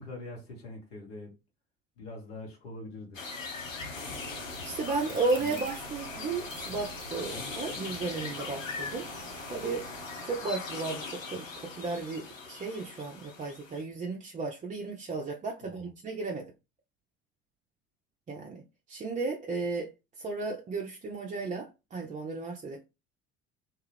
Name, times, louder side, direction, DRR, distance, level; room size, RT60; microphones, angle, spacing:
voice 1, 0.0-1.3 2.0-3.2 5.4-5.6 7.3-7.5 15.6-15.9, left 2 dB, 70° left, 1.4 m, -43 dB
sound 1, 3.1-13.8, left 4 dB, 85° left, 0.6 m, -40 dB
sound 2, 3.9-10.3, right 8 dB, 70° right, 0.5 m, -48 dB
voice 2, 4.6-9.1 9.5-9.9 10.2-16.5 18.3-18.6 18.9-19.9 20.2-22.8, right 3 dB, 20° right, 0.5 m, -34 dB
2.9 x 2.3 x 3.2 m
figure-of-eight pair, 55°, 38 cm